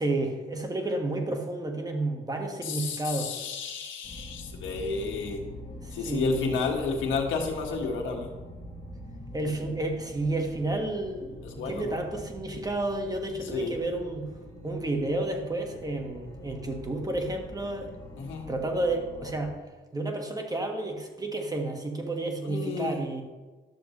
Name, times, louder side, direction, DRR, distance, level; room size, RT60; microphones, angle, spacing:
voice 1, 0.0-3.3 5.8-6.5 9.3-14.3 14.6-17.9 18.5-19.5 19.9-23.2, right 2 dB, 20° right, 3 dB, 1.5 m, -31 dB
voice 2, 2.6-5.4 5.9-8.3 11.4-12.0 13.4-13.8 18.2-18.5 22.4-23.0, left 4 dB, 80° left, 1 dB, 1.6 m, -31 dB
sound 1, 4.0-19.5, left 1 dB, 15° left, 3.1 m, -44 dB
12.0 x 6.8 x 3.1 m, 1.3 s
cardioid pair, 90°, 20 cm